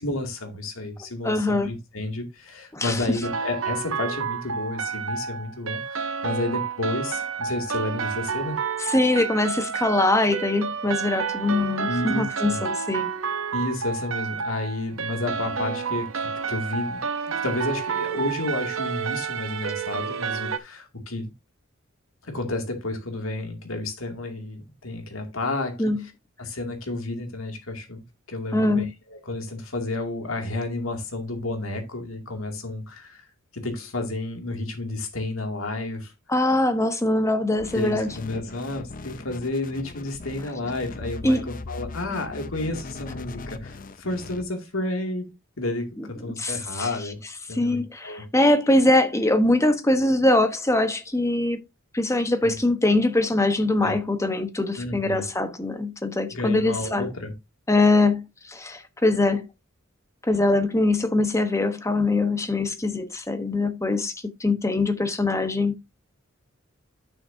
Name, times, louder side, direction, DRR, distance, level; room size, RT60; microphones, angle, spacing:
voice 1, 0.0-8.6 11.9-12.6 13.5-17.0 17.4-21.3 22.2-26.1 26.4-28.0 28.3-33.3 33.5-36.1 37.7-45.3 45.6-47.2 47.5-48.3 52.4-52.6 53.8-54.0 54.8-55.2 56.3-57.3, left 2 dB, 85° left, 2.4 m, -31 dB
voice 2, 1.2-1.7 2.7-3.2 8.8-13.1 25.8-26.0 28.5-28.9 36.3-38.1 41.2-41.5 46.0-46.1 46.4-46.9 47.5-51.6 51.9-57.1 57.7-59.4 60.2-65.7, left 2 dB, 15° left, 1.0 m, -22 dB
sound 1, 3.2-20.6, right 6 dB, 70° right, 0.8 m, -30 dB
sound 2, 37.6-44.4, left 3 dB, 40° left, 0.6 m, -39 dB
11.0 x 6.6 x 2.7 m
head